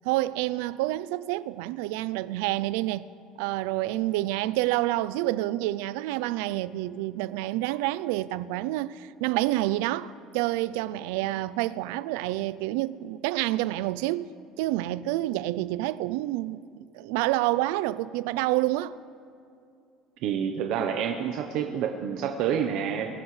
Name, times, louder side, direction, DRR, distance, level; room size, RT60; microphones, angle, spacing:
voice 1, 0.0-3.1 3.4-19.0, right 16 dB, 90° right, 0.3 m, -28 dB
voice 2, 20.2-23.1, right 8 dB, 65° right, 0.8 m, -28 dB
21.5 x 12.5 x 3.2 m
cardioid pair, 140°, 0 cm